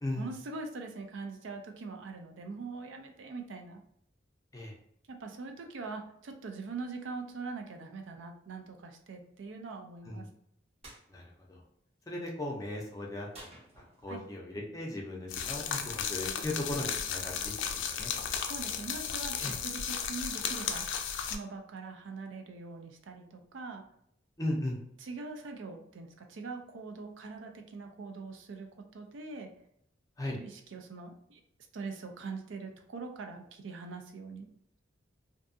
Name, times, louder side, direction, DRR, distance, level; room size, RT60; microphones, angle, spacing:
voice 1, 0.2-3.8 5.1-10.3 14.1-14.2 18.4-20.9 21.2-23.8 25.0-28.7 28.9-29.5 30.3-31.4 31.7-34.5, right 4 dB, 90° right, 4 dB, 0.4 m, -42 dB
sound 1, 10.8-11.1 13.3-14.3, right 1 dB, 35° right, 0.6 m, -52 dB
voice 2, 12.1-13.3 13.8-18.1 19.4-19.5 24.4-24.8 30.2-30.4, left 1 dB, 20° left, -1 dB, 0.5 m, -37 dB
sound 2, 15.3-21.4, left 7 dB, 80° left, 0.3 m, -34 dB
2.6 x 2.3 x 2.5 m, 0.71 s
head